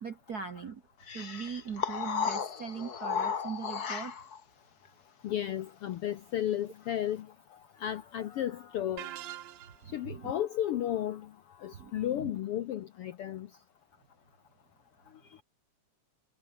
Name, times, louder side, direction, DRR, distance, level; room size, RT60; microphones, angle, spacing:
voice 1, 0.0-4.2 9.8-10.3 11.7-12.3, right 6 dB, 55° right, 1.1 m, -41 dB
sound 1, 1.1-4.4, left 6 dB, 40° left, 1.6 m, -34 dB
voice 2, 5.2-7.3 7.8-9.1 9.9-11.3 11.6-13.5, left 11 dB, 70° left, 1.4 m, -33 dB
sound 2, 9.0-10.0, right 14 dB, 70° right, 2.0 m, -43 dB
omnidirectional pair, 3.5 m